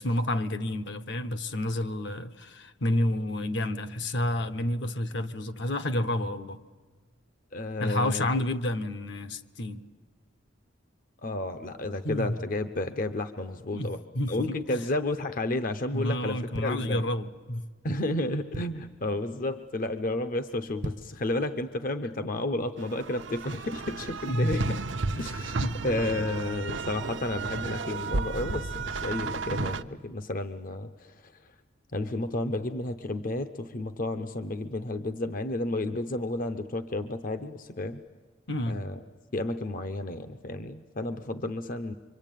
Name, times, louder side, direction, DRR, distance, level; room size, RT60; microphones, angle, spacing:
voice 1, 0.0-6.6 7.8-9.8 12.0-12.4 13.7-14.8 15.9-17.6 24.3-24.8 25.1-25.3 25.6-25.8 38.5-38.8, left 1 dB, 65° left, 1.0 m, -30 dB
voice 2, 7.5-8.3 11.2-14.0 14.3-17.0 17.8-24.8 25.2-31.3 31.9-38.0 38.7-39.0 39.3-41.9, left 2 dB, 45° left, 0.7 m, -32 dB
sound 1, 16.5-17.5 18.0-18.1 18.3-19.0 19.5-19.7 20.0-20.1 20.6-21.3 21.7-21.8, right 1 dB, 40° right, 0.7 m, -39 dB
sound 2, 22.8-29.8, right 3 dB, 75° right, 0.8 m, -33 dB
25.0 x 25.0 x 9.1 m
head